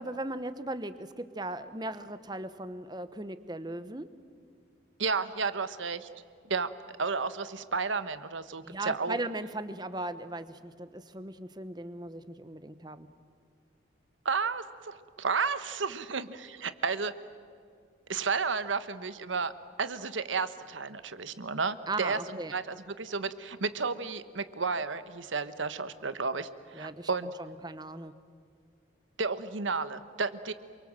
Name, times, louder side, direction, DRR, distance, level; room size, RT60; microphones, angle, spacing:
voice 1, 0.0-4.1 8.6-13.1 21.9-22.5 26.8-27.1 27.4-28.1, right 2 dB, 20° right, 12 dB, 1.0 m, -38 dB
voice 2, 5.0-6.1 6.5-6.7 7.0-9.2 14.2-17.1 18.1-19.5 19.8-22.2 22.5-27.3 29.2-30.5, right 4 dB, 90° right, 13 dB, 1.2 m, -32 dB
28.0 x 23.5 x 7.6 m, 2.2 s
head